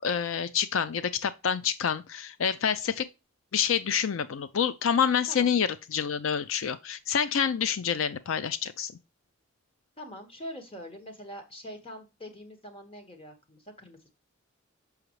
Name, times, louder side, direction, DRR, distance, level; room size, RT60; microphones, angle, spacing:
voice 1, 0.0-3.1 3.5-8.9, left 7 dB, 85° left, 0.5 m, -27 dB
voice 2, 10.0-14.1, equal, 25° left, 1.5 m, -43 dB
6.4 x 5.8 x 3.1 m
head